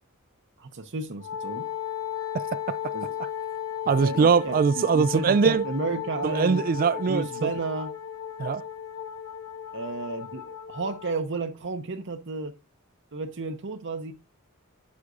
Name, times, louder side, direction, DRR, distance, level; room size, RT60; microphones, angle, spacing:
voice 1, 0.6-1.7 2.9-3.1 4.0-6.6 7.1-7.9 9.7-12.5 13.1-14.1, right 3 dB, 55° right, 0.8 m, -32 dB
Wind instrument woodwind instrument, 1.2-11.2, left 9 dB, 75° left, 1.9 m, -35 dB
voice 2, 2.3-2.9 3.9-5.6 6.2-7.5 8.4-8.6, right 5 dB, 40° right, 0.3 m, -22 dB
9.6 x 7.2 x 2.6 m
head